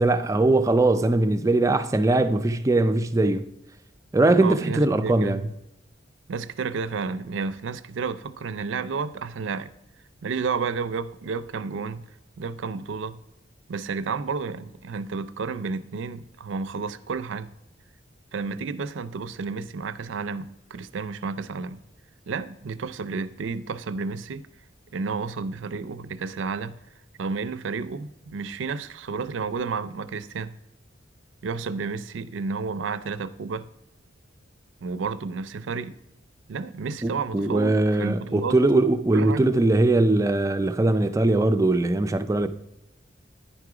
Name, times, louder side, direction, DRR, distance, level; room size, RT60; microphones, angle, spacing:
voice 1, 0.0-3.5 4.1-5.5 37.0-42.5, right 2 dB, 15° right, 0.3 m, -21 dB
voice 2, 4.4-5.5 6.3-9.7 10.2-12.1 12.4-13.2 13.7-17.5 18.3-21.8 22.3-24.4 24.9-26.8 27.2-30.6 31.4-33.7 34.8-36.0 36.5-38.6 39.1-39.5, right 4 dB, 80° right, 0.4 m, -31 dB
10.0 x 4.8 x 4.9 m
head